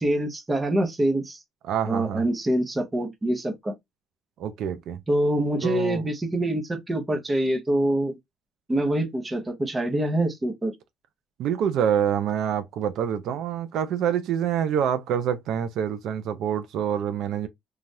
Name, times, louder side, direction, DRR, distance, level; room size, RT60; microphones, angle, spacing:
voice 1, 0.0-1.4 1.9-3.7 5.1-8.2 8.7-10.7, right 1 dB, 15° right, 0.7 m, -25 dB
voice 2, 1.7-2.2 4.4-5.0 5.6-6.0 11.4-17.5, right 9 dB, 65° right, 0.4 m, -26 dB
3.2 x 2.3 x 2.6 m
cardioid pair, 155°, 0 cm